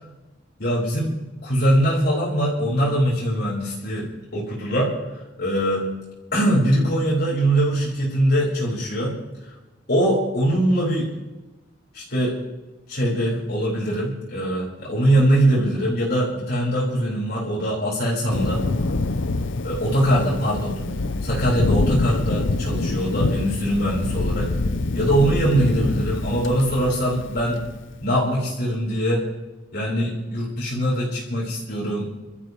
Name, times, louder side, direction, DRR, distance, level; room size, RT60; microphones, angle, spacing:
voice 1, 0.6-1.1 1.4-4.9 5.4-5.9 6.3-9.1 9.4-9.5 9.9-11.1 11.9-12.4 12.9-18.6 19.6-20.8 21.2-24.5 24.9-27.6 28.0-29.3 29.7-32.1, right 1 dB, 55° left, -6 dB, 4.5 m, -22 dB
Thunder, 18.3-27.9, left 2 dB, 70° left, 0.7 m, -25 dB
28.0 x 13.5 x 3.2 m, 1.1 s
head